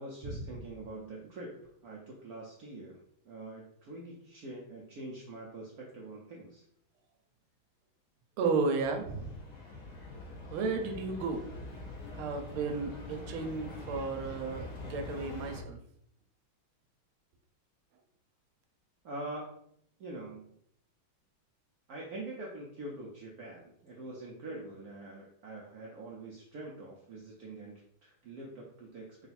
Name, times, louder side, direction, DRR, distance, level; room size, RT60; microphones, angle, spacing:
voice 1, 0.0-6.6 19.0-19.6 20.0-20.5 21.9-29.2, right 2 dB, 70° right, -2 dB, 0.9 m, -44 dB
voice 2, 8.4-9.4 10.5-11.5 12.1-15.8, right 4 dB, 90° right, 5 dB, 1.5 m, -33 dB
sound 1, 8.8-15.6, left 2 dB, 55° left, 1.1 m, -44 dB
3.7 x 2.4 x 4.1 m, 0.71 s
omnidirectional pair, 2.2 m